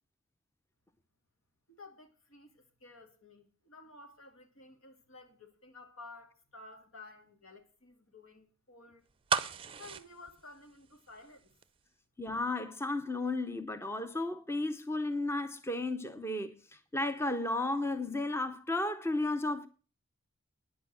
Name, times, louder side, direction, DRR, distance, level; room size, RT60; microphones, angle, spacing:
voice 1, 1.7-9.1 9.7-11.6, left 2 dB, 85° left, 2.4 m, -53 dB
sound 1, 9.3-11.3 11.6-11.7, right 5 dB, 25° right, 0.5 m, -34 dB
voice 2, 12.2-16.5 16.9-19.7, left 2 dB, 10° left, 0.7 m, -33 dB
10.0 x 8.3 x 7.4 m
head